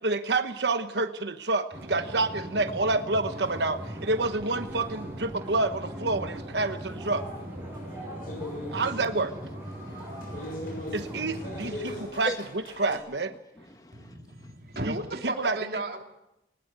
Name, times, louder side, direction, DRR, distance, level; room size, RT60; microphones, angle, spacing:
voice 1, 0.0-7.2 8.7-9.3 10.9-13.3 14.8-14.9 15.2-15.6, right 3 dB, 75° right, 8 dB, 1.1 m, -28 dB
sound 1, 1.7-12.1, right 1 dB, 15° right, 6.8 m, -39 dB
sound 2, 3.3-13.0, left 1 dB, 50° left, 6.7 m, -43 dB
voice 2, 9.7-10.9 11.9-12.0 12.2-12.4 13.7-14.5, equal, 20° left, 6 dB, 1.5 m, -41 dB
voice 3, 13.9-16.0, right 2 dB, 60° right, 3 dB, 3.0 m, -35 dB
20.5 x 20.0 x 8.2 m, 0.87 s
head